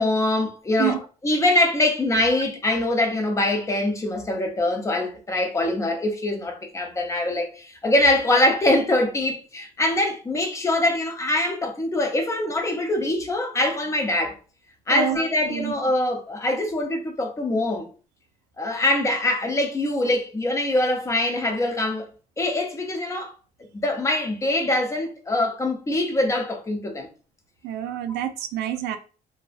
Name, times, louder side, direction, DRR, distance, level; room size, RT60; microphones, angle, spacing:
voice 1, 0.0-14.3 14.9-17.9 18.6-22.1 22.4-23.3 23.7-27.1, left 1 dB, 20° left, 0.6 m, -23 dB
voice 2, 27.6-29.0, right 12 dB, 90° right, 0.4 m, -27 dB
2.6 x 2.0 x 2.4 m
cardioid pair, 110°, 17 cm